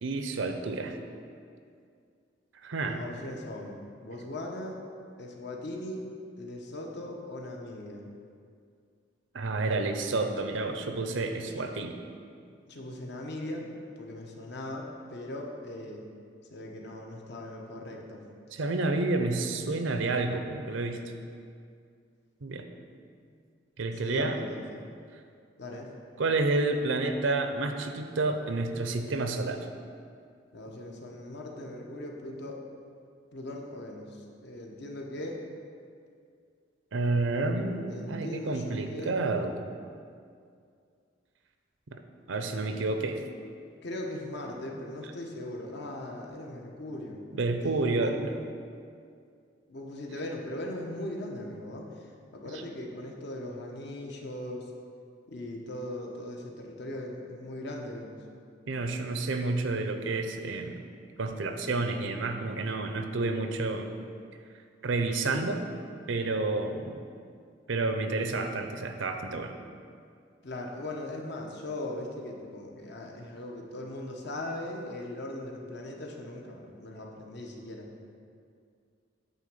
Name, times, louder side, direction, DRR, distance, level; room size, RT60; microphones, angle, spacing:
voice 1, 0.0-0.9 2.6-3.0 9.3-12.0 18.5-21.0 22.4-22.6 23.8-24.4 26.2-29.7 36.9-39.6 41.9-42.0 42.3-43.2 47.3-48.4 52.4-52.6 58.7-60.9 61.2-63.9 64.8-65.6 66.1-67.0 67.7-69.5, right 3 dB, 85° right, 6 dB, 0.7 m, -30 dB
voice 2, 2.8-4.8 5.2-6.1 6.4-8.0 12.7-13.7 14.0-16.0 16.5-18.2 23.2-23.4 24.0-24.8 25.6-25.9 30.5-32.6 33.3-34.1 34.4-35.4 37.9-39.2 43.8-47.2 48.0-48.1 49.7-51.8 52.3-54.7 55.3-58.2 70.4-77.9, left 1 dB, 65° left, 1 dB, 1.0 m, -39 dB
9.1 x 3.5 x 6.7 m, 2.3 s
head